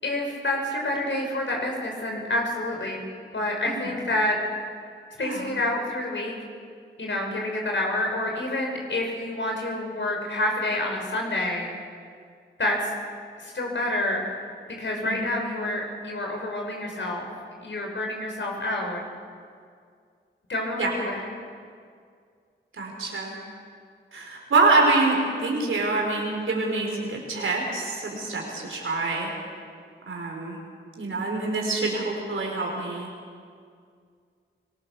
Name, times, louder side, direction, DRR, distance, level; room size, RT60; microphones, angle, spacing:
voice 1, 0.0-3.0 3.3-4.4 5.2-6.3 7.0-11.7 12.6-12.9 13.4-14.2 14.7-17.3 17.6-19.0 20.5-21.2, left 1 dB, 65° left, 0 dB, 6.0 m, -28 dB
voice 2, 5.2-5.6 15.0-15.4 20.8-20.9 22.7-23.4 24.1-29.3 30.1-30.6 31.0-33.1, right 3 dB, 90° right, 0 dB, 4.8 m, -26 dB
23.5 x 19.0 x 6.9 m, 2.2 s
cardioid pair, 50°, 20 cm